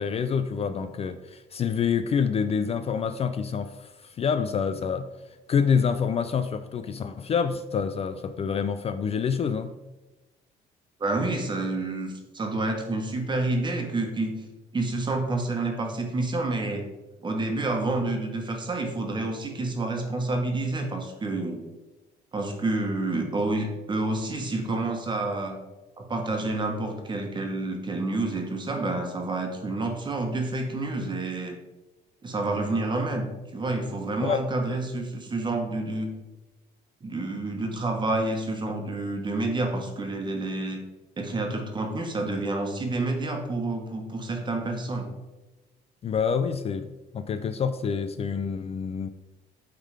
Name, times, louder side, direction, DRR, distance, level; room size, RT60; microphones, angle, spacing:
voice 1, 0.0-5.1 5.5-9.7 34.2-34.4 46.0-49.1, left 6 dB, 35° left, 10 dB, 0.4 m, -27 dB
voice 2, 11.0-14.3 14.7-16.8 17.2-21.6 22.3-25.6 26.0-31.6 32.2-36.1 37.0-40.8 41.2-45.1, right 2 dB, 25° right, 3 dB, 1.4 m, -29 dB
8.9 x 3.7 x 4.9 m, 1.1 s
cardioid pair, 110°, 17 cm